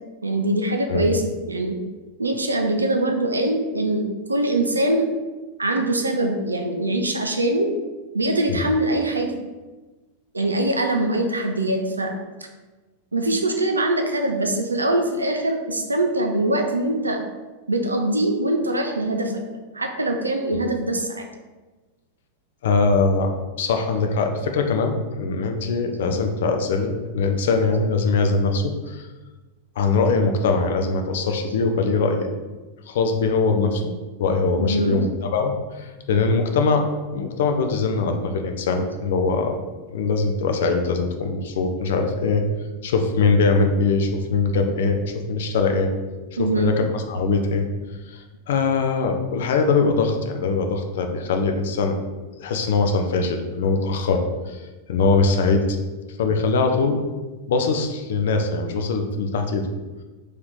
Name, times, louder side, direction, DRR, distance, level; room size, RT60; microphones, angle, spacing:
voice 1, 0.2-1.2 1.5-1.8 2.2-5.1 5.6-7.7 8.1-9.3 10.3-12.1 13.1-17.2 17.7-19.4 19.7-21.3 34.6-35.0 46.4-46.7, right 1 dB, 80° right, 4 dB, 0.5 m, -23 dB
voice 2, 22.6-23.3 23.6-29.1 29.8-32.3 32.9-33.9 34.2-36.9 37.1-39.6 39.9-42.4 42.8-45.9 46.4-47.7 48.1-52.0 52.4-54.6 54.9-55.6 56.2-57.0 57.5-59.7, left 4 dB, 60° left, 4 dB, 0.5 m, -22 dB
3.2 x 2.9 x 3.9 m, 1.2 s
figure-of-eight pair, 90°, 0 cm